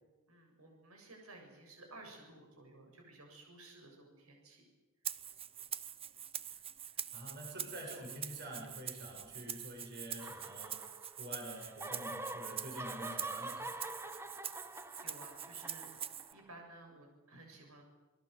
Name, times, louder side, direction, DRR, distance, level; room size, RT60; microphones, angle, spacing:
voice 1, 0.3-4.6 7.5-7.6 9.4-9.6 15.0-15.9 16.3-17.8, right 2 dB, 80° right, 3 dB, 7.4 m, -55 dB
Rattle (instrument), 5.0-16.3, right 9 dB, 25° right, 0.8 m, -45 dB
voice 2, 7.1-10.8 11.2-13.8, equal, 50° right, 0 dB, 6.7 m, -47 dB
sound 1, 10.2-11.3 11.6-16.6, right 2 dB, 10° right, 1.2 m, -45 dB
28.0 x 20.5 x 8.1 m, 1.2 s
head